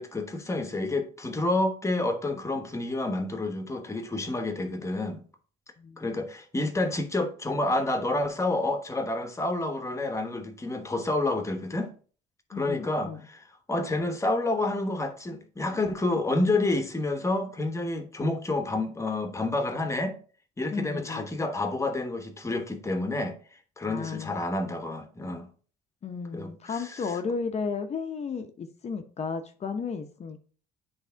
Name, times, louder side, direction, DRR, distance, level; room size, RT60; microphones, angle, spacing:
voice 1, 0.0-5.2 6.0-11.9 12.5-20.2 20.6-23.4 23.8-25.5 26.3-27.0, left 2 dB, 15° left, 1.1 m, -29 dB
voice 2, 12.5-13.2 20.7-21.3 23.9-24.3 26.0-30.4, left 5 dB, 40° left, 0.8 m, -34 dB
8.3 x 3.3 x 4.5 m
cardioid pair, 110°, 17 cm